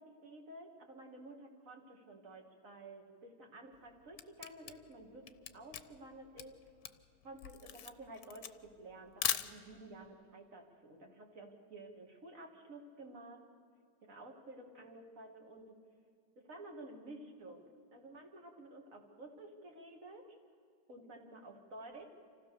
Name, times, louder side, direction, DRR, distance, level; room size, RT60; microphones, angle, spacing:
voice 1, 0.0-6.6 7.2-13.4 14.0-15.8 16.4-20.4 20.9-22.1, right 2 dB, 45° right, 3 dB, 2.4 m, -52 dB
Camera, 3.7-10.0, left 10 dB, 65° left, 1.1 m, -41 dB
26.0 x 16.0 x 6.8 m, 2.4 s
omnidirectional pair, 1.9 m